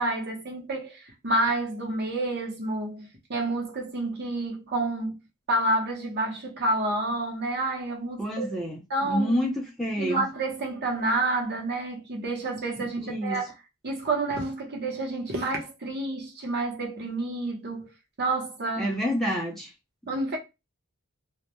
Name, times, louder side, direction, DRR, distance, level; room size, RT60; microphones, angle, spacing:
voice 1, 0.0-5.2 5.5-8.5 8.9-9.4 10.0-13.5 13.8-17.9 18.2-18.9 20.1-20.4, right 2 dB, 50° right, 0.8 m, -29 dB
voice 2, 8.2-10.3 12.8-13.4 18.8-19.7, equal, ahead, 0.4 m, -28 dB
2.1 x 2.1 x 2.8 m
head